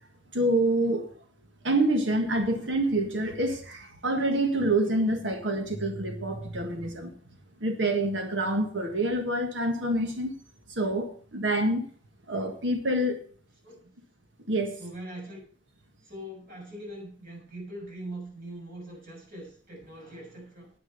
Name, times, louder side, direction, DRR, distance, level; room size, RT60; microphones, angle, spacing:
voice 1, 0.3-1.1 1.6-7.1 7.6-10.3 10.7-11.9 12.3-13.2 14.5-14.8, right 1 dB, 90° right, 5 dB, 1.7 m, -27 dB
voice 2, 14.8-15.4 16.0-20.7, right 1 dB, 55° right, -1 dB, 6.6 m, -42 dB
10.0 x 8.7 x 5.5 m, 0.43 s
head